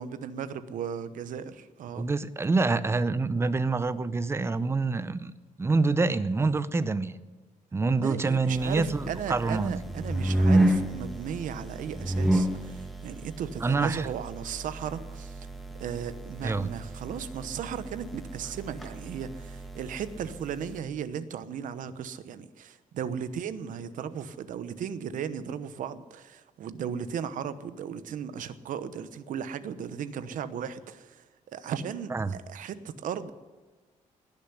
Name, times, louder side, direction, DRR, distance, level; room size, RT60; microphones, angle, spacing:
voice 1, 0.0-2.1 8.0-15.5 15.8-31.2 31.5-33.3, right 8 dB, 75° right, 13 dB, 1.0 m, -36 dB
voice 2, 2.0-5.3 5.6-7.1 7.7-9.8 13.6-14.1 16.4-16.7 32.1-32.3, right 3 dB, 20° right, 15 dB, 0.6 m, -26 dB
sound 1, 8.5-20.8, right 1 dB, ahead, 1.6 m, -31 dB
19.0 x 7.0 x 9.9 m, 1.3 s
cardioid pair, 135°, 14 cm